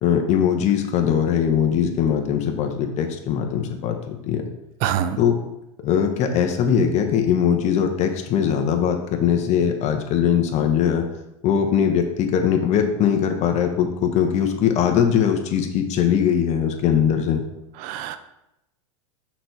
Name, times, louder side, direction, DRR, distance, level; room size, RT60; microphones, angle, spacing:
voice 1, 0.0-4.4 5.2-5.4 5.8-11.0 11.4-17.4, left 8 dB, 40° left, 4 dB, 1.0 m, -21 dB
voice 2, 4.8-5.2 17.8-18.2, right 10 dB, 50° right, 11 dB, 0.6 m, -24 dB
6.0 x 4.1 x 4.6 m, 0.88 s
hypercardioid pair, 115°, 18 cm